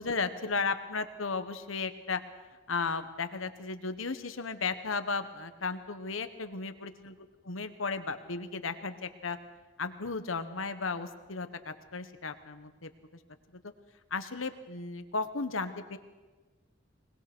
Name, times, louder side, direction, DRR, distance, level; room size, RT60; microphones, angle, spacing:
voice 1, 0.0-2.2 2.7-7.2 7.4-9.4 9.8-12.9 13.6-13.7 14.1-16.0, left 4 dB, 85° left, 9 dB, 1.4 m, -35 dB
21.0 x 20.5 x 6.2 m, 1.3 s
head